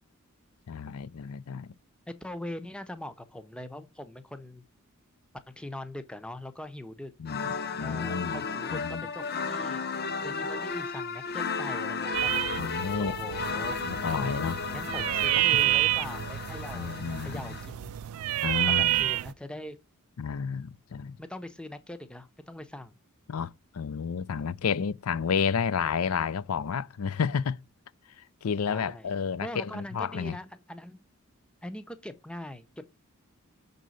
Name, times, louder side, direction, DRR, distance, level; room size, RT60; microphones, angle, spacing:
voice 1, 0.7-1.7 7.2-7.5 7.8-8.4 8.7-9.1 12.6-13.2 13.9-14.6 16.7-17.6 18.4-19.1 20.2-21.1 23.3-27.6 28.4-30.4, left 6 dB, 85° left, 0.5 m, -31 dB
voice 2, 2.1-4.6 5.5-7.1 7.8-9.9 10.2-13.8 14.7-17.9 18.7-19.8 21.2-22.9 28.7-29.1 29.4-31.0 31.6-32.9, left 1 dB, 5° left, 0.6 m, -42 dB
sound 1, 7.2-17.7, left 4 dB, 45° left, 0.8 m, -34 dB
sound 2, 12.1-19.3, right 15 dB, 85° right, 0.3 m, -29 dB
6.5 x 4.0 x 6.2 m
head